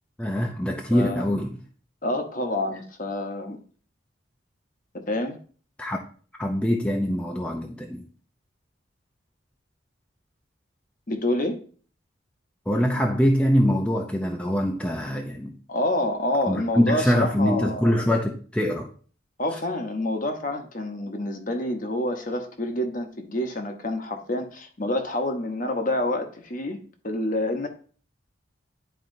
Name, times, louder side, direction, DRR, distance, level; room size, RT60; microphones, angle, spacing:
voice 1, 0.2-1.6 5.8-6.0 6.4-8.0 12.7-15.5 16.5-18.9, equal, 5° left, 0.5 m, -23 dB
voice 2, 0.9-1.2 2.0-3.6 5.1-5.4 11.1-11.6 15.7-18.0 19.4-26.8 27.0-27.7, left 1 dB, 40° left, 0.9 m, -27 dB
11.0 x 4.3 x 2.6 m
head